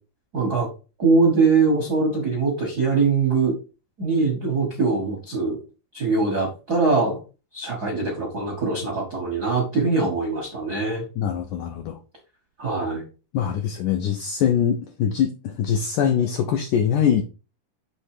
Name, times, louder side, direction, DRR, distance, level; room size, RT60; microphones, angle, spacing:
voice 1, 0.3-0.7 1.0-3.5 4.0-5.6 5.9-7.2 7.5-11.0 12.6-13.0, right 4 dB, 65° right, -1 dB, 0.9 m, -22 dB
voice 2, 11.2-12.0 13.3-17.2, left 8 dB, 85° left, 6 dB, 1.7 m, -23 dB
7.4 x 3.3 x 4.8 m, 0.32 s
omnidirectional pair, 4.4 m